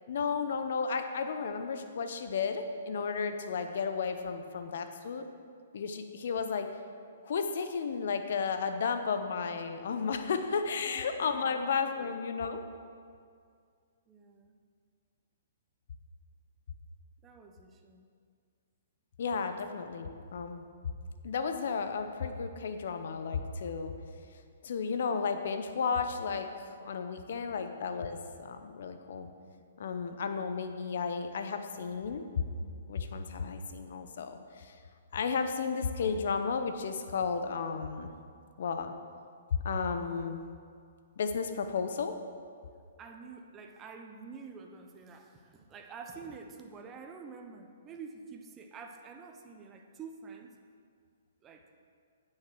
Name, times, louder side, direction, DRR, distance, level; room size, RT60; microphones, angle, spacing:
voice 1, 0.1-5.2 5.7-6.7 7.2-12.6 19.2-20.6 21.2-23.9 24.6-29.3 29.8-32.2 32.6-34.7 35.1-38.1 38.6-38.9 39.5-40.4 41.2-42.1, left 5 dB, 65° left, 8 dB, 0.9 m, -33 dB
voice 2, 10.9-12.1 14.1-14.5 17.2-18.1 27.3-27.7 43.0-50.5 51.4-51.7, right 5 dB, 20° right, 4 dB, 0.9 m, -48 dB
9.2 x 6.6 x 6.2 m, 2.2 s
hypercardioid pair, 130°, 0 cm